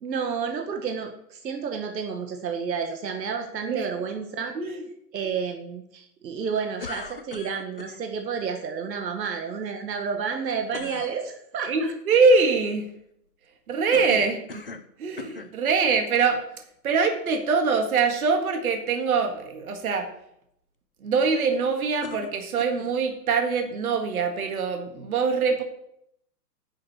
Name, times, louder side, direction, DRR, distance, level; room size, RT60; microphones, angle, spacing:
voice 1, 0.0-4.5 5.1-11.9, right 6 dB, 80° right, 5 dB, 1.7 m, -30 dB
sound 1, 6.8-8.0 10.7-11.1 13.9-14.9 15.2-15.5 16.3-16.4 22.0-22.9, left 4 dB, 35° left, 0.5 m, -39 dB
voice 2, 11.7-12.9 13.7-14.7 15.0-16.4 16.8-20.1 21.0-25.6, right 4 dB, 60° right, 5 dB, 1.9 m, -23 dB
10.5 x 6.6 x 6.1 m, 0.74 s
hypercardioid pair, 175°, 50 cm